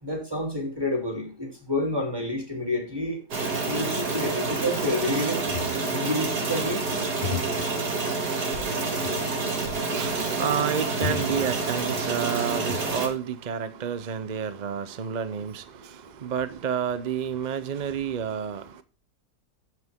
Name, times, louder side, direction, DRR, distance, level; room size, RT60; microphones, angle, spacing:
voice 1, 0.0-3.2 3.6-5.4 5.9-6.9, left 1 dB, 15° right, 3.4 m, -29 dB
sound 1, 3.3-13.1, right 3 dB, 75° right, 2.7 m, -28 dB
sound 2, 5.4-6.1 7.2-7.8 9.0-9.4 9.8-9.9 11.0-12.0 12.4-13.2, left 6 dB, 30° left, 0.8 m, -35 dB
voice 2, 9.5-18.8, right 8 dB, 55° right, 0.5 m, -30 dB
15.0 x 5.9 x 3.6 m
omnidirectional pair, 1.7 m